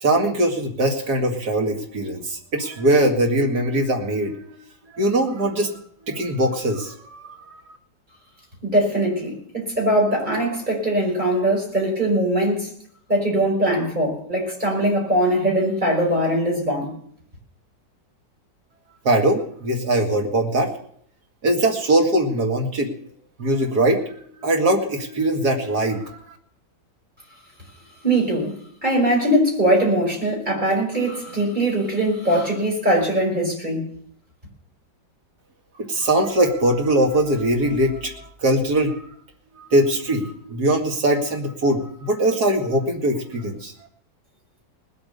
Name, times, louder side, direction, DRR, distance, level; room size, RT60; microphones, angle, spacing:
voice 1, 0.0-4.6 4.9-5.8 6.1-7.6 19.0-20.7 21.4-22.9 23.4-26.2 35.8-39.0 39.6-43.7, right 1 dB, 60° right, 2.8 m, -21 dB
voice 2, 8.6-12.7 13.1-16.9 28.0-33.9, right 1 dB, 25° right, 5.4 m, -21 dB
19.5 x 8.1 x 6.9 m
omnidirectional pair, 2.0 m